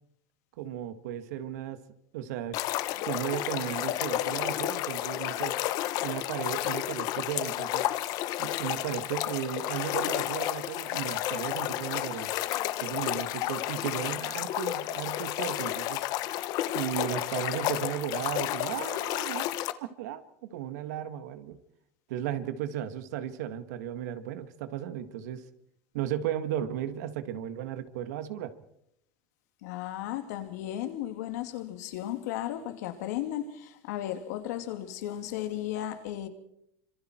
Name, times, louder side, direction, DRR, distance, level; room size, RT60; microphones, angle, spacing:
voice 1, 0.6-1.8 2.1-2.6 3.0-5.6 6.0-7.9 8.4-12.3 12.8-16.1 16.7-19.5 19.8-21.6 22.1-25.4 25.9-28.5, right 10 dB, 90° right, 2.0 m, -35 dB
sound 1, 2.5-19.7, left 14 dB, 45° left, 1.1 m, -31 dB
voice 2, 12.5-12.9 29.6-36.3, left 12 dB, 85° left, 2.9 m, -35 dB
27.0 x 26.0 x 4.6 m
cardioid pair, 165°, 9 cm